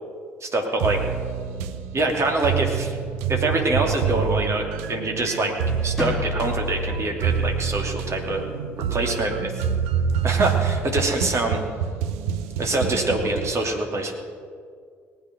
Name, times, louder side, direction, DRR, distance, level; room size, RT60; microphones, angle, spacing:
voice 1, 0.4-1.0 1.9-3.0 3.3-5.5 5.8-8.4 8.9-9.5 10.2-11.6 12.6-14.2, right 2 dB, 40° right, 2 dB, 2.6 m, -24 dB
sound 1, 0.8-13.6, right 7 dB, 70° right, 0.7 m, -27 dB
sound 2, 2.0-3.5 4.9-5.2 5.6-6.8, left 1 dB, 5° right, 3.3 m, -35 dB
19.5 x 9.0 x 6.2 m, 2.1 s
figure-of-eight pair, 50°, 8 cm